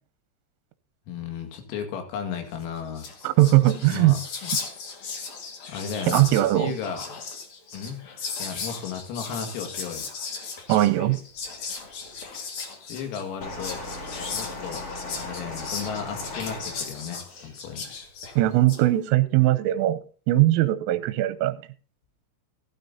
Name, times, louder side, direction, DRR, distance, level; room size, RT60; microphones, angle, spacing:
voice 1, 1.1-3.1 3.9-4.2 5.7-6.2 6.5-7.0 7.7-8.1 8.4-10.1 12.9-13.8 14.3-14.9 15.2-17.9, left 7 dB, 90° left, 4.7 m, -34 dB
Whispering, 2.6-2.7 2.9-18.8, left 5 dB, 55° left, 1.9 m, -36 dB
voice 2, 3.2-4.2 6.1-6.7 10.7-11.2 18.4-20.0 20.3-21.5, right 15 dB, 85° right, 3.2 m, -20 dB
sound 1, 13.4-17.5 18.4-18.5, left 2 dB, 40° left, 3.0 m, -37 dB
15.5 x 12.5 x 2.8 m
omnidirectional pair, 6.0 m